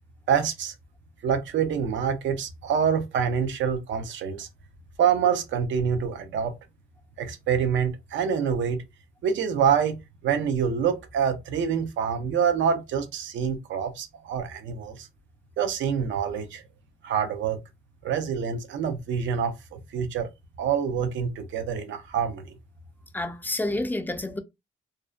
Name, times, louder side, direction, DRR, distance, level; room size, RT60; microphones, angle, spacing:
voice 1, 0.3-0.7 1.2-4.5 5.0-6.5 7.2-8.8 9.2-10.0 10.2-15.1 15.6-16.6 17.0-17.6 18.0-20.3 20.6-22.5, right 7 dB, 70° right, 0.6 m, -26 dB
voice 2, 23.1-24.4, left 1 dB, 10° left, 0.4 m, -29 dB
2.5 x 2.1 x 2.4 m
cardioid pair, 90°, 20 cm